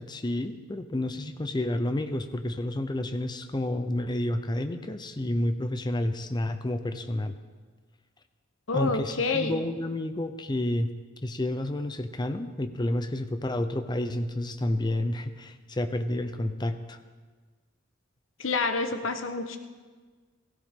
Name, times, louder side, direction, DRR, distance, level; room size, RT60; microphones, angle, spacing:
voice 1, 0.0-7.4 8.7-10.9 11.2-17.0, left 1 dB, 20° left, 8 dB, 0.6 m, -30 dB
voice 2, 8.7-9.6 18.4-19.6, left 3 dB, 85° left, 7 dB, 1.1 m, -28 dB
16.5 x 16.0 x 3.7 m, 1.4 s
head